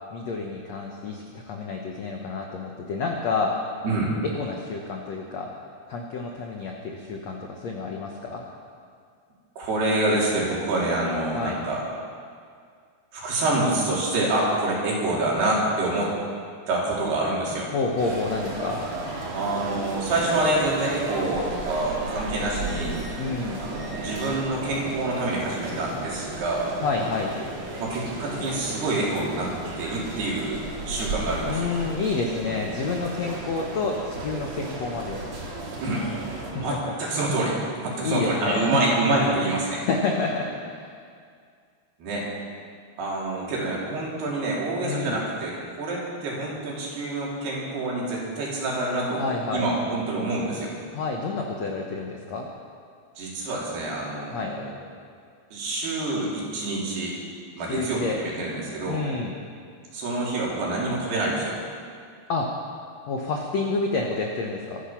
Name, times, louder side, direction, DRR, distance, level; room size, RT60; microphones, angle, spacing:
voice 1, 0.1-3.5 4.3-5.5 5.9-8.4 11.3-11.6 17.7-18.8 23.2-23.6 26.8-27.3 31.5-35.2 36.5-36.6 38.0-38.7 39.8-40.7 44.8-45.2 49.2-49.6 50.9-52.5 54.3-54.5 57.7-58.2 58.9-59.3 62.3-62.5 63.1-64.8, left 4 dB, 90° left, 1 dB, 1.5 m, -29 dB
voice 2, 9.6-11.8 13.1-16.1 16.7-17.7 19.3-23.0 23.6-26.7 27.8-29.5 29.8-31.7 32.5-32.6 35.8-36.1 36.5-39.8 42.0-42.3 43.0-49.2 49.5-50.7 53.2-54.7 55.5-57.1 57.6-59.1 59.9-61.6, right 2 dB, 65° right, -4 dB, 5.3 m, -27 dB
sound 1, 18.0-36.5, right 2 dB, 45° right, 3.0 m, -34 dB
24.5 x 10.0 x 5.9 m, 2.2 s
omnidirectional pair, 5.0 m